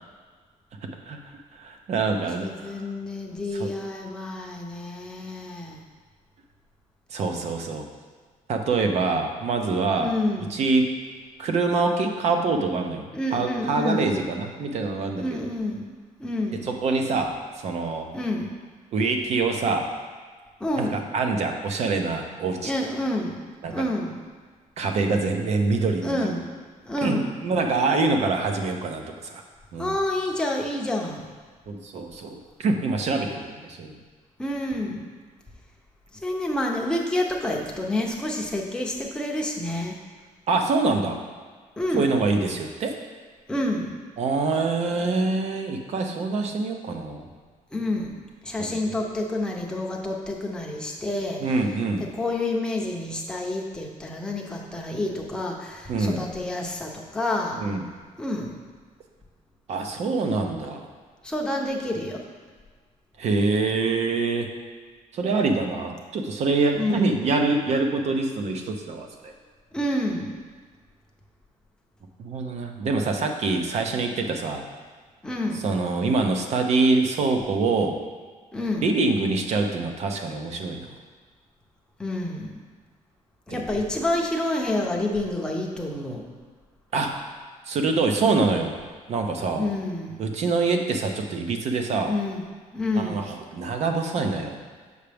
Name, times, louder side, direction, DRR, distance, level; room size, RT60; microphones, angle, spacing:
voice 1, 1.6-2.8 3.6-3.7 7.1-7.9 8.5-10.1 10.5-10.9 11.4-13.1 13.3-15.4 16.6-18.1 18.9-19.9 20.8-22.7 23.6-23.8 24.8-26.4 27.0-29.4 29.7-30.0 31.7-34.0 40.5-41.2 41.9-43.0 44.2-47.3 48.6-48.8 51.4-52.1 55.9-56.2 57.6-57.9 59.7-60.9 63.2-64.5 65.1-69.3 72.2-74.6 75.6-78.0 78.8-80.9 83.5-83.6 86.9-87.2 87.7-88.7 89.1-89.7 90.2-92.1 92.9-94.6, right 3 dB, 50° right, 4 dB, 0.7 m, -25 dB
voice 2, 2.4-5.8 10.0-10.5 13.1-14.1 15.2-16.7 18.1-18.5 20.6-21.1 22.6-24.1 26.0-26.4 26.9-27.3 29.8-31.3 34.4-35.1 36.2-40.0 41.8-42.3 43.5-44.0 47.7-48.1 48.4-51.4 52.1-57.6 58.2-58.6 61.2-62.2 66.7-67.2 69.7-70.4 75.2-75.7 78.5-78.9 82.0-82.5 83.5-86.2 89.6-90.2 92.0-92.4 92.7-93.2, left 1 dB, 5° left, -1 dB, 0.7 m, -28 dB
6.5 x 5.7 x 3.4 m, 1.5 s
cardioid pair, 170°, 14 cm